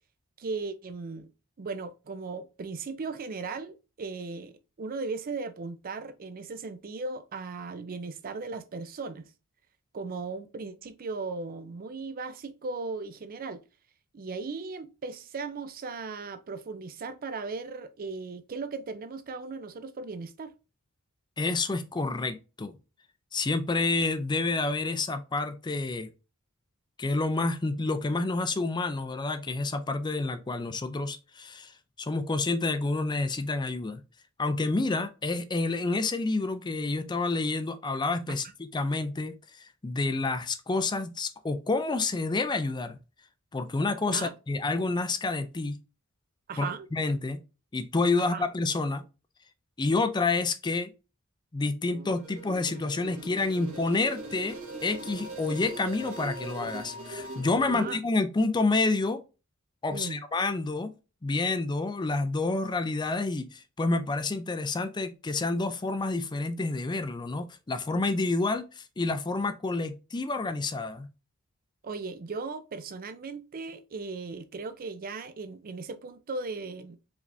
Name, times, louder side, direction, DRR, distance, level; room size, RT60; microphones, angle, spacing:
voice 1, 0.4-1.3 1.6-9.3 9.9-13.6 14.1-20.6 44.1-44.3 46.5-46.9 48.2-48.4 57.7-58.0 59.9-60.2 71.8-77.0, right 4 dB, 40° right, 0.4 m, -37 dB
voice 2, 21.4-22.7 23.3-26.1 27.0-31.7 32.0-34.0 34.4-43.0 43.5-45.7 46.6-47.4 47.7-49.0 49.8-50.9 51.5-59.2 59.8-60.9 61.2-71.1, left 3 dB, 20° left, 0.4 m, -29 dB
sound 1, 51.9-57.9, right 1 dB, 70° right, 1.6 m, -40 dB
4.9 x 3.3 x 2.6 m
head